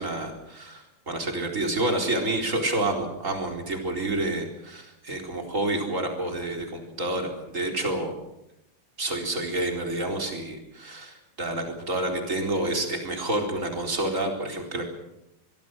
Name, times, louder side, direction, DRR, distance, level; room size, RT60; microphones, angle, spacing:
voice 1, 0.0-8.1 9.0-14.9, right 1 dB, 15° right, 2 dB, 3.8 m, -29 dB
24.5 x 22.0 x 6.4 m, 0.87 s
omnidirectional pair, 5.4 m